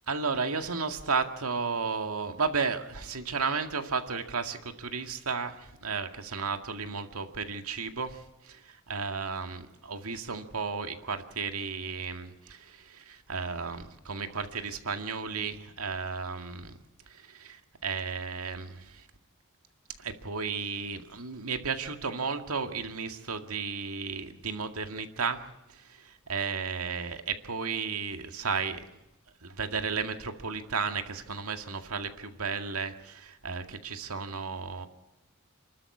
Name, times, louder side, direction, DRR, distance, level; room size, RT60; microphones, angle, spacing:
voice 1, 0.1-16.7 17.1-19.0 20.0-25.5 25.7-28.8 29.4-34.9, right 5 dB, 85° right, 6 dB, 2.1 m, -33 dB
28.5 x 13.0 x 8.5 m, 0.97 s
head